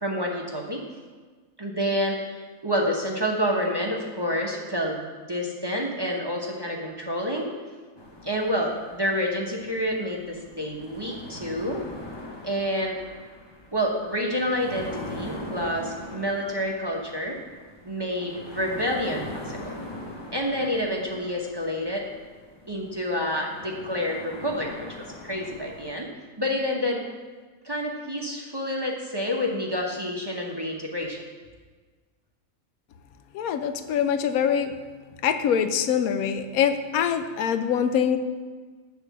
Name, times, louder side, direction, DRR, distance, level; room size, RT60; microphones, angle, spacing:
voice 1, 0.0-0.8 1.6-7.5 8.2-11.8 12.4-13.0 13.7-17.4 17.8-19.7 20.3-22.1 22.7-26.1 26.4-27.0 27.6-31.2, equal, 20° right, -1 dB, 0.8 m, -28 dB
sound 1, 8.0-26.0, left 1 dB, 20° left, 0.8 m, -42 dB
voice 2, 33.3-34.7 35.2-38.2, left 8 dB, 85° left, 9 dB, 1.1 m, -24 dB
10.5 x 3.7 x 7.3 m, 1.4 s
omnidirectional pair, 1.5 m